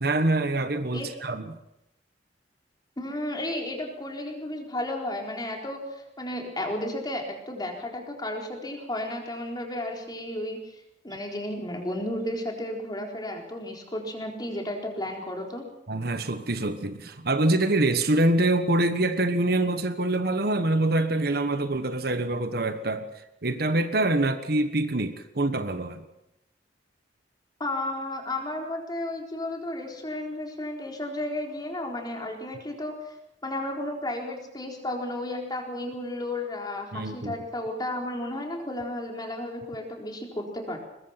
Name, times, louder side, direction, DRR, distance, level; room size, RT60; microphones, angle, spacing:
voice 1, 0.0-1.6 15.9-23.1 23.4-26.0 36.9-37.3, right 2 dB, 60° right, 9 dB, 1.4 m, -25 dB
voice 2, 3.0-15.7 27.6-33.1 33.4-40.8, left 1 dB, 25° left, 1 dB, 4.1 m, -33 dB
22.5 x 21.0 x 5.9 m, 0.86 s
head